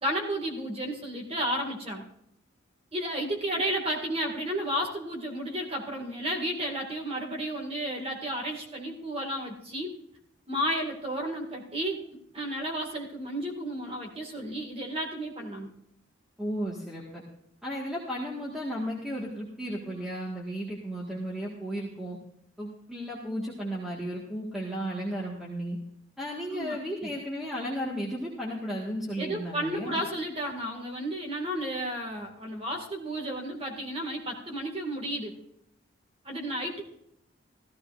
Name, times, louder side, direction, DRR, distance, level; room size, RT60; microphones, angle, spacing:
voice 1, 0.0-2.1 2.9-10.0 10.5-15.7 26.5-27.1 29.2-35.4 36.2-36.8, equal, 30° right, 1 dB, 2.1 m, -32 dB
voice 2, 16.4-17.2 17.6-22.2 22.6-25.8 26.2-30.0, equal, ahead, -4 dB, 1.7 m, -34 dB
15.0 x 14.5 x 2.6 m, 0.74 s
head